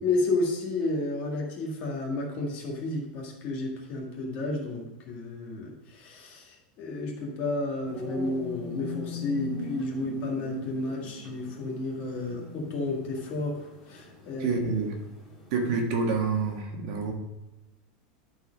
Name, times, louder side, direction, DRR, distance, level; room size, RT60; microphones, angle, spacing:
voice 1, 0.0-14.6, left 2 dB, 35° left, -1 dB, 1.8 m, -31 dB
sound 1, 7.8-16.6, left 4 dB, ahead, 1.8 m, -41 dB
voice 2, 14.4-14.9 15.5-17.1, right 4 dB, 50° right, 2 dB, 1.4 m, -27 dB
11.0 x 4.6 x 5.1 m, 1.0 s
supercardioid pair, 175°, 5 cm